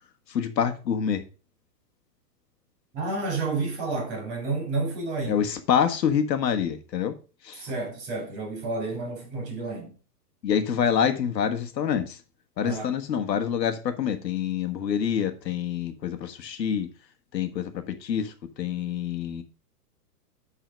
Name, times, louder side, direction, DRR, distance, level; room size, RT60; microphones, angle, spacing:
voice 1, 0.3-1.2 5.3-7.1 7.4-7.6 10.4-12.2 12.6-16.9 17.3-18.3 18.6-19.4, left 8 dB, 90° left, 1.4 m, -26 dB
voice 2, 2.9-5.4 7.6-9.9 12.6-13.0, right 3 dB, 30° right, 3.9 m, -30 dB
9.2 x 4.1 x 5.0 m
hypercardioid pair, 165°, 48 cm